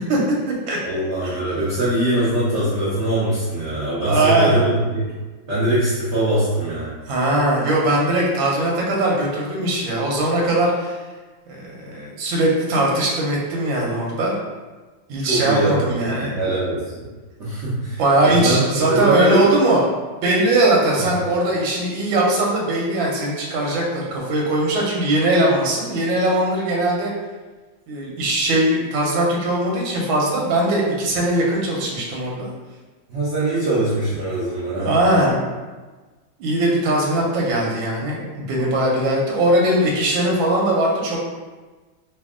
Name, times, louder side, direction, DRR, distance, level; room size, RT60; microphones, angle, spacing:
voice 1, 0.8-5.1 5.5-6.9 15.2-15.7 16.2-17.1 17.4-19.5 21.0-21.1 33.1-35.0, right 1 dB, 55° right, -9 dB, 0.8 m, -22 dB
voice 2, 4.0-4.6 7.1-11.0 11.5-14.3 15.1-16.3 18.0-19.8 20.2-27.1 27.9-32.5 34.7-35.4 36.4-41.2, right 1 dB, 90° right, -2 dB, 1.5 m, -20 dB
3.4 x 2.3 x 3.6 m, 1.3 s
omnidirectional pair, 2.1 m